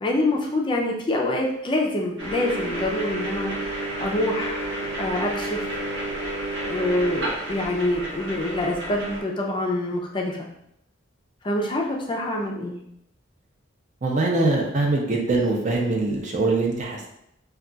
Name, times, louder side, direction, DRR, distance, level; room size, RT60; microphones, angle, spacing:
voice 1, 0.0-3.5 3.8-5.7 6.6-10.5 11.4-12.8, left 1 dB, 25° left, -1 dB, 0.4 m, -26 dB
sound 1, 2.2-9.2, right 1 dB, 65° right, 0.8 m, -30 dB
voice 2, 14.0-17.1, right 2 dB, 40° right, 0 dB, 0.5 m, -23 dB
2.3 x 2.3 x 3.8 m, 0.78 s
head